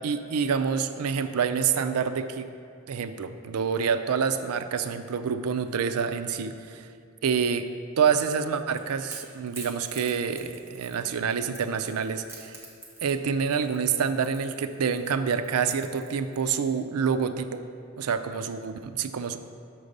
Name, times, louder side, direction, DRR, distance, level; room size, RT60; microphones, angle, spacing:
voice 1, 0.0-2.5 2.9-6.9 7.2-12.5 13.0-17.6 18.0-19.4, right 6 dB, 80° right, 10 dB, 0.4 m, -27 dB
Crackle / Crack, 8.4-16.6, right 2 dB, 10° right, 1.1 m, -47 dB
6.2 x 5.2 x 6.5 m, 2.3 s
head